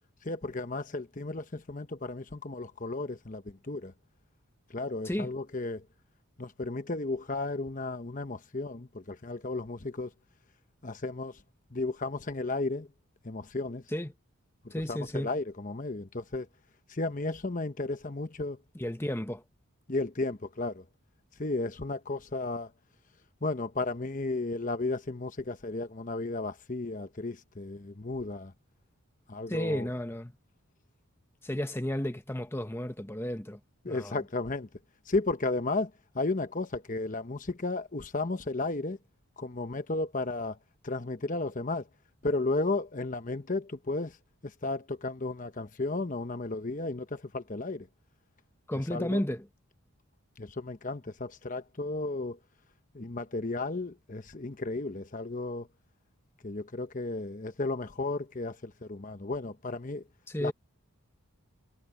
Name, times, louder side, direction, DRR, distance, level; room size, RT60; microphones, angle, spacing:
voice 1, 0.2-3.9 4.7-5.8 6.4-10.1 10.8-11.3 11.7-12.9 13.2-13.8 14.6-16.5 16.9-18.6 19.9-20.8 21.4-22.7 23.4-28.5 29.3-29.9 33.8-34.7 35.1-39.0 39.4-40.6 40.8-41.8 42.2-44.1 44.6-47.9 48.9-49.2 50.4-52.4 52.9-55.7 56.4-60.0 60.4-60.5, left 2 dB, 35° left, 1.0 m, -34 dB
voice 2, 14.7-15.3 18.7-19.4 29.5-30.3 31.4-33.6 33.9-34.2 48.7-49.5 60.3-60.5, left 1 dB, 10° left, 1.0 m, -33 dB
head